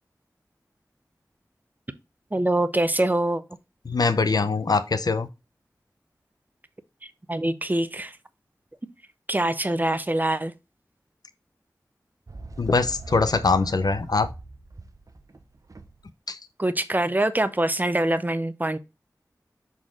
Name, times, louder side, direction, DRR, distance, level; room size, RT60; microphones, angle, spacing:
voice 1, 2.3-3.4 7.3-8.2 9.3-10.5 16.6-18.8, right 1 dB, 25° right, 0.6 m, -24 dB
voice 2, 3.9-5.3 12.6-14.3 16.3-16.4, left 4 dB, 70° left, 0.6 m, -22 dB
sound 1, 12.3-16.1, right 2 dB, 55° right, 0.8 m, -40 dB
6.2 x 4.1 x 3.7 m
wide cardioid pair, 55°, 7 cm